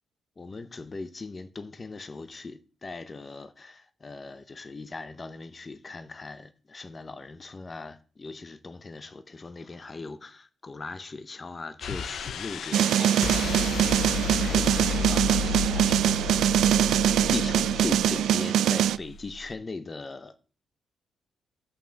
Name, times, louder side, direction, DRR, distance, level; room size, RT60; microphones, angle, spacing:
voice 1, 0.4-13.4 14.3-16.5 17.3-20.3, left 3 dB, 20° left, 0.6 m, -39 dB
sound 1, 11.8-19.5, left 7 dB, 55° left, 0.7 m, -33 dB
sound 2, 12.7-19.0, right 10 dB, 85° right, 0.3 m, -23 dB
7.1 x 5.9 x 7.3 m
wide cardioid pair, 175°, 0 cm